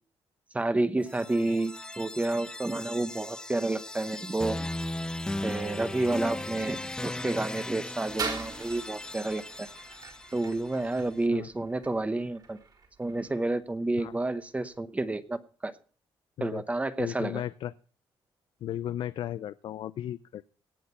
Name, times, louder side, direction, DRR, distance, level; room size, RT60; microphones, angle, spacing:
voice 1, 0.5-4.6 5.4-9.7 10.3-12.6 13.0-15.7 16.4-17.4, right 2 dB, 15° right, 12 dB, 0.9 m, -30 dB
sound 1, 1.0-10.9, left 1 dB, 10° left, 0.5 m, -38 dB
sound 2, 8.1-14.8, right 4 dB, 50° right, 3.8 m, -42 dB
voice 2, 17.0-17.7 18.6-20.4, left 11 dB, 70° left, 14 dB, 0.4 m, -35 dB
18.0 x 6.6 x 5.5 m, 0.41 s
cardioid pair, 125°, 9 cm